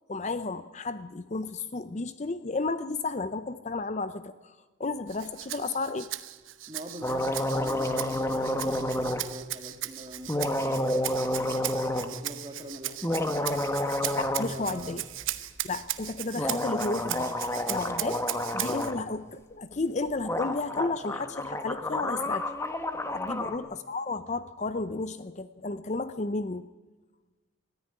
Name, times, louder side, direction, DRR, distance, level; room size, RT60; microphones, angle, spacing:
voice 1, 0.1-6.1 14.2-15.1 15.6-17.4 17.7-18.2 18.5-22.5 23.1-26.7, left 3 dB, 35° left, 12 dB, 0.6 m, -33 dB
Rattle (instrument), 5.1-18.9, right 14 dB, 75° right, 0.9 m, -37 dB
voice 2, 6.7-13.7 14.5-15.0 18.1-18.2 23.2-23.5, equal, 25° right, 4 dB, 2.4 m, -44 dB
sound 1, 7.0-9.2 10.3-12.1 12.9-14.6 14.8-14.9 16.4-19.0 20.0-20.1 20.2-23.6, left 1 dB, 15° left, 1.2 m, -30 dB
20.5 x 13.5 x 9.9 m, 1.2 s
head